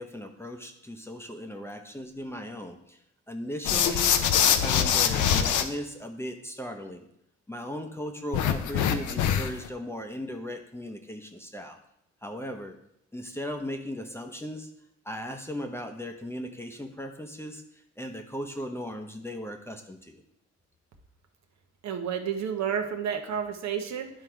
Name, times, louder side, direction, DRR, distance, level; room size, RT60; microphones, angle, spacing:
voice 1, 0.0-3.0 3.3-7.1 7.5-11.8 12.2-12.8 13.1-14.7 15.0-20.2, equal, 10° left, 5 dB, 0.8 m, -37 dB
sound 1, 3.6-5.6 8.3-9.7, left 8 dB, 80° left, 0.7 m, -24 dB
voice 2, 21.8-24.2, right 8 dB, 65° right, 5 dB, 0.9 m, -31 dB
10.5 x 3.7 x 4.6 m, 0.75 s
cardioid pair, 90°, 30 cm